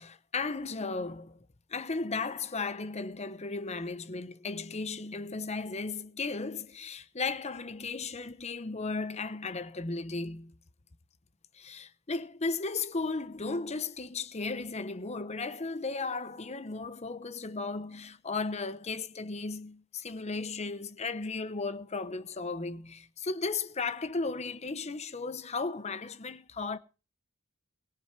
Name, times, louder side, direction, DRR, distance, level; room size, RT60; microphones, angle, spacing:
voice 1, 0.0-1.4 1.7-10.5 11.5-26.8, left 3 dB, 30° left, 0.8 m, -35 dB
18.0 x 7.5 x 5.9 m
head